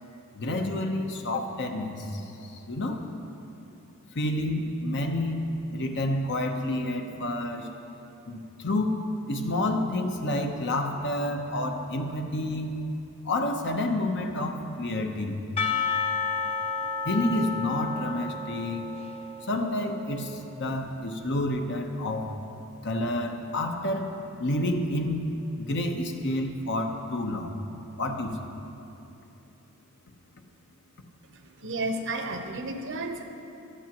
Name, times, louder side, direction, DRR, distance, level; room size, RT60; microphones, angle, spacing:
voice 1, 0.3-3.0 4.1-5.5 5.7-7.7 8.3-9.0 9.3-12.7 13.2-15.4 17.0-18.9 19.5-22.3 22.8-25.2 25.6-27.5 28.0-28.4, left 1 dB, 55° left, 4 dB, 0.9 m, -29 dB
Percussion / Church bell, 15.6-20.3, left 5 dB, 25° left, 0.5 m, -31 dB
voice 2, 31.6-33.2, right 2 dB, 60° right, 5 dB, 0.9 m, -32 dB
16.0 x 12.0 x 3.0 m, 2.9 s
head